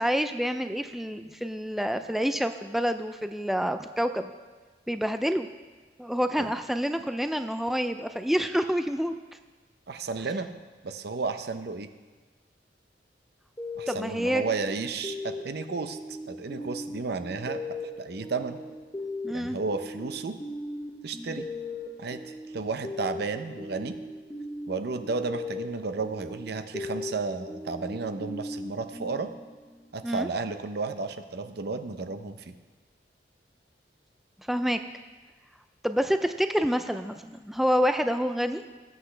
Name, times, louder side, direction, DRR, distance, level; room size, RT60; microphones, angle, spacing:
voice 1, 0.0-4.3 4.9-5.5 6.0-9.1 13.9-14.4 19.2-19.6 30.0-30.3 34.5-34.8 35.8-38.6, equal, ahead, 8 dB, 0.3 m, -27 dB
voice 2, 9.9-10.5 10.8-11.9 13.8-16.0 16.3-18.6 19.3-20.3 21.0-21.5 22.0-24.0 24.7-29.3 29.9-32.5, right 4 dB, 65° right, 9 dB, 0.7 m, -33 dB
sound 1, 13.6-29.9, left 2 dB, 15° left, 0.8 m, -39 dB
19.0 x 8.0 x 3.3 m, 1.3 s
head